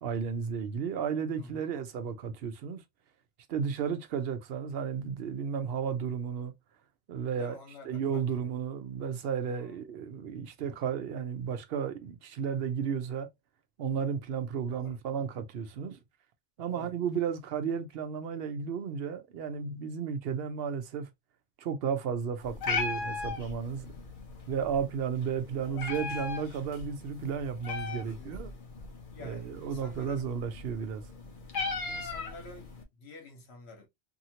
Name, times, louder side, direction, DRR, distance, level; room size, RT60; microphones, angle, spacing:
voice 1, 0.0-2.8 3.5-6.5 7.1-7.6 7.9-13.3 13.8-16.0 16.6-21.1 21.6-23.9 24.5-28.5 29.2-31.0, right 7 dB, 65° right, 0.8 m, -33 dB
voice 2, 1.4-1.7 7.3-8.5 9.4-9.8 14.7-15.0 16.7-16.9 25.7-25.9 27.9-28.5 29.1-30.3 31.9-33.9, left 2 dB, 70° left, 1.4 m, -49 dB
Meow, 22.4-32.8, left 4 dB, 55° left, 0.9 m, -38 dB
2.8 x 2.7 x 2.7 m
omnidirectional pair, 1.1 m